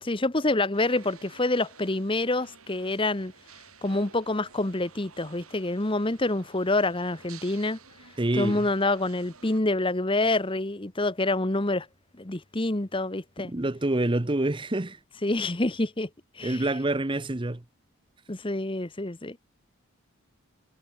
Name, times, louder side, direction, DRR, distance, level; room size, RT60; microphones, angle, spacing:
voice 1, 0.0-3.3 3.8-7.8 8.3-11.9 12.2-13.5 15.2-16.1 16.3-16.7 18.3-19.4, left 2 dB, 25° left, 1.1 m, -27 dB
sound 1, 0.7-9.6, right 6 dB, 80° right, 7.8 m, -52 dB
voice 2, 8.2-8.7 13.4-15.0 16.4-17.6, right 1 dB, 20° right, 0.8 m, -27 dB
head